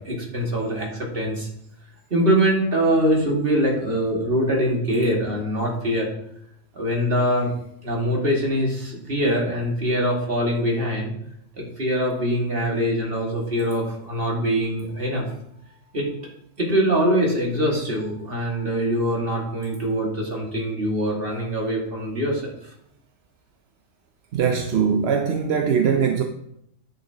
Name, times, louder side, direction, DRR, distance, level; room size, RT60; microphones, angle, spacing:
voice 1, 0.0-1.5 2.1-6.1 6.7-7.5 7.8-11.1 11.6-15.2 15.9-16.1 16.6-22.5, equal, 45° right, 2.1 m, -23 dB
voice 2, 24.3-26.2, right 7 dB, 60° right, 0.8 m, -21 dB
10.0 x 6.5 x 2.8 m
omnidirectional pair, 1.4 m